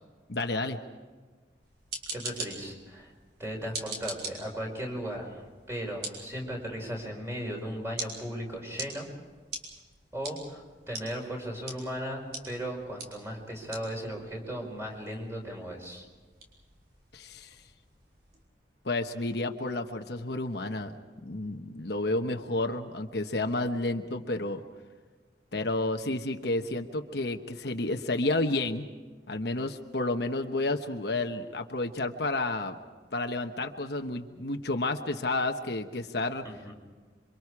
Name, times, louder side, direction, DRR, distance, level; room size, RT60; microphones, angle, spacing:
voice 1, 0.3-0.8 17.1-17.5 18.8-20.9 21.2-24.6 25.5-28.9 29.3-32.8 33.1-36.4, left 2 dB, 60° left, 5 dB, 1.1 m, -31 dB
sound 1, 1.6-18.4, right 3 dB, 60° right, 5.7 m, -44 dB
voice 2, 2.1-3.1 3.4-9.1 10.1-16.0 36.4-36.7, equal, 15° right, 0 dB, 5.1 m, -37 dB
27.5 x 25.0 x 4.9 m, 1.4 s
head